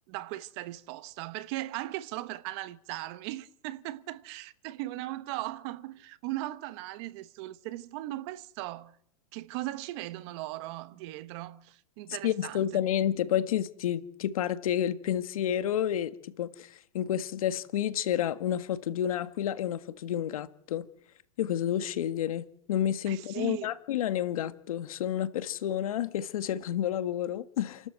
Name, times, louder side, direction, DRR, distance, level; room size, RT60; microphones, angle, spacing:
voice 1, 0.1-9.0 9.3-12.6 23.1-23.7, right 17 dB, 50° right, 1.1 m, -38 dB
voice 2, 12.2-20.9 21.4-27.9, left 10 dB, 75° left, 1.7 m, -30 dB
28.5 x 12.5 x 8.0 m
hypercardioid pair, 130°, 18 cm